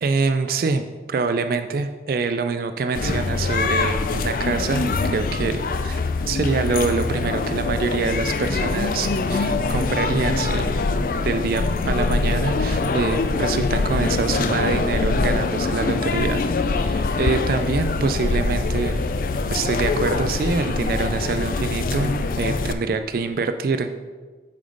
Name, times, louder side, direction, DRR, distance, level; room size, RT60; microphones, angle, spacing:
voice 1, 0.0-6.0 6.3-10.7 11.2-16.4 16.8-19.1 19.5-23.9, right 4 dB, 50° right, 8 dB, 0.3 m, -25 dB
sound 1, 2.9-22.7, left 3 dB, 50° left, 0.4 m, -23 dB
8.5 x 5.1 x 3.9 m, 1.4 s
head